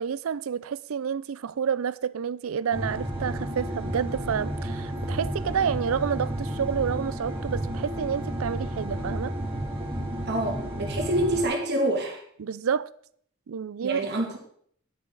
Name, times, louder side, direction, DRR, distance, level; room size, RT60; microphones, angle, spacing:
voice 1, 0.0-9.3 12.4-12.9 13.5-14.0, right 7 dB, 80° right, 0.4 m, -29 dB
sound 1, 2.7-11.4, right 1 dB, 25° right, 2.6 m, -32 dB
voice 2, 10.3-12.2 13.8-14.4, right 1 dB, 55° right, 2.4 m, -27 dB
9.7 x 9.5 x 4.0 m
head